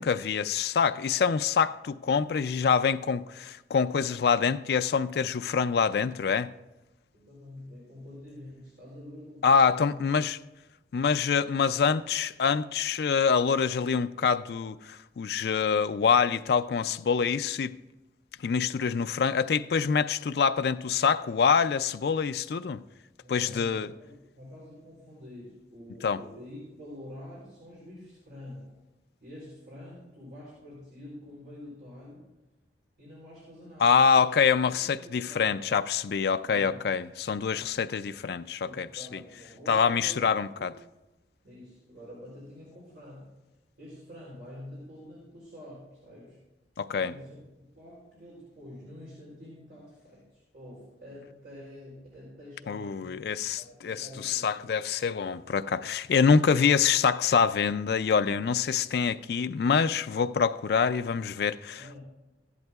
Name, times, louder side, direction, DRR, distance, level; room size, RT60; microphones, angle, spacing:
voice 1, 0.0-6.5 9.4-10.4 10.9-17.8 18.4-22.8 23.3-23.9 26.0-26.2 33.8-38.9 39.7-40.7 46.8-47.1 52.7-62.0, left 6 dB, 60° left, 0.3 m, -25 dB
voice 2, 7.1-10.0 23.2-28.7 29.2-32.2 33.0-34.3 34.8-35.5 36.5-36.8 37.5-37.8 38.1-38.2 38.6-40.7 41.4-43.3 43.8-46.4 47.0-47.5 47.8-53.2 53.6-54.7 61.7-62.0, left 1 dB, 60° right, 3.5 m, -47 dB
15.0 x 10.5 x 2.3 m
head